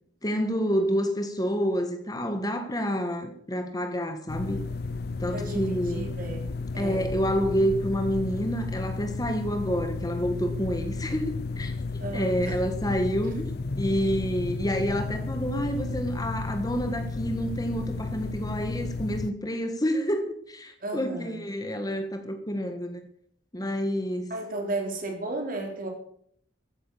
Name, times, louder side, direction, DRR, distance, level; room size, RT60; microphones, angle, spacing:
voice 1, 0.2-4.6 5.2-6.0 6.8-11.7 12.1-23.0 23.5-24.3, equal, 20° left, 7 dB, 1.4 m, -28 dB
sound 1, 4.3-19.3, left 3 dB, 55° left, 0.7 m, -33 dB
voice 2, 5.3-6.5 6.7-7.1 12.0-12.6 20.8-21.4 24.3-25.9, right 2 dB, 50° right, 2 dB, 3.8 m, -34 dB
14.5 x 9.1 x 7.1 m, 0.65 s
head